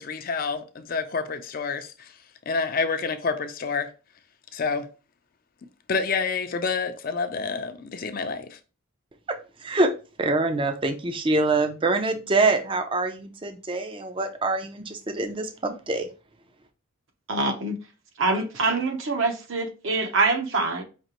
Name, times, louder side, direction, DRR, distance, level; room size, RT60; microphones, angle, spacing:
voice 1, 0.0-2.2 2.5-3.9 4.5-4.9 5.9-8.6, left 5 dB, 40° left, 0.4 m, -28 dB
voice 2, 9.6-9.9 10.2-16.1, right 2 dB, 25° right, 0.4 m, -25 dB
voice 3, 17.3-17.8 18.2-20.8, right 3 dB, 65° right, 0.8 m, -25 dB
5.3 x 2.9 x 2.9 m
head